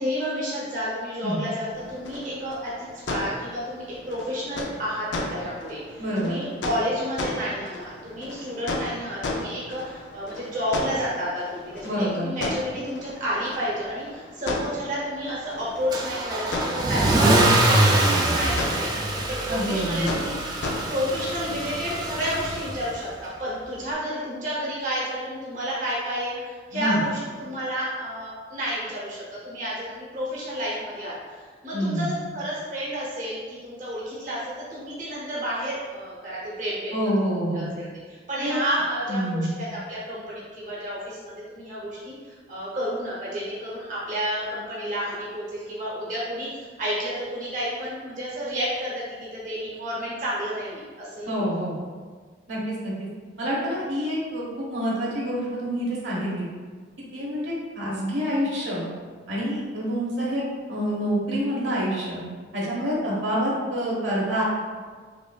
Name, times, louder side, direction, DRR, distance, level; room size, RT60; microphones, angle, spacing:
voice 1, 0.0-17.4 17.7-20.6 20.9-36.9 37.2-51.4, equal, 45° right, -7 dB, 0.8 m, -31 dB
sound 1, 1.7-21.5, left 2 dB, 80° left, 0.5 m, -35 dB
voice 2, 6.0-6.4 11.8-12.3 19.5-20.1 26.7-27.0 31.7-32.1 36.9-37.6 38.4-38.6 39.1-39.5 51.3-51.7 52.5-52.9 53.4-56.4 57.1-58.8 59.3-60.4 60.7-62.2 62.5-64.4, equal, 90° right, -6 dB, 1.2 m, -27 dB
Car / Engine starting / Accelerating revving vroom, 15.9-23.0, right 1 dB, 25° right, 0.3 m, -24 dB
5.1 x 2.6 x 2.3 m, 1.5 s
head